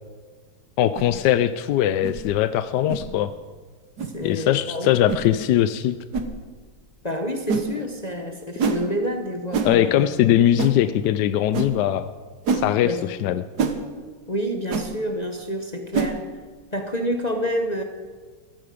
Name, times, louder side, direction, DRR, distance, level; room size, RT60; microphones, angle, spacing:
voice 1, 0.8-3.3 4.2-5.9 9.7-12.1 12.5-13.4, left 11 dB, 75° left, 12 dB, 1.0 m, -21 dB
sound 1, 0.9-1.1 2.0-2.2 2.9-3.1 4.0-4.1 5.1-5.3 6.1-6.3 7.5-7.7 8.6-8.8 9.5-9.7 10.6-10.8 11.5-11.7 12.5-12.7 13.6-13.8 14.7-14.9 15.9-16.1, right 5 dB, 55° right, 1.6 m, -25 dB
voice 2, 4.0-4.9 7.0-10.1 12.8-13.2 14.3-16.3 16.7-17.8, equal, 40° left, 4 dB, 0.6 m, -28 dB
15.5 x 15.0 x 5.1 m, 1.5 s
omnidirectional pair, 2.3 m